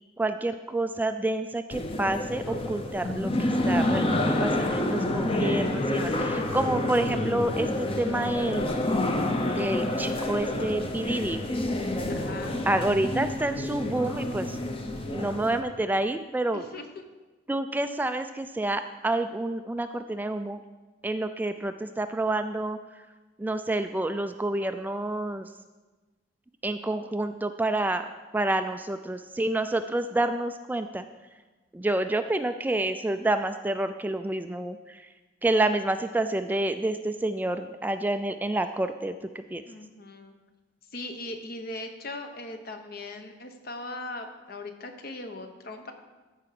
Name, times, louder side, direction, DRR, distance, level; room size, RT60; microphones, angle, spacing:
voice 1, 0.2-8.8 9.6-11.4 12.7-14.6 15.1-16.6 17.5-20.6 21.0-22.8 23.4-25.5 26.6-31.1 31.7-35.1 35.4-39.6, right 2 dB, 10° right, 8 dB, 0.3 m, -28 dB
sound 1, 1.7-15.6, left 1 dB, 30° left, 0.8 m, -28 dB
voice 2, 12.1-12.6 16.5-17.0 39.7-40.3 40.9-45.9, left 2 dB, 55° left, 6 dB, 1.1 m, -39 dB
14.0 x 4.8 x 5.9 m, 1.2 s
head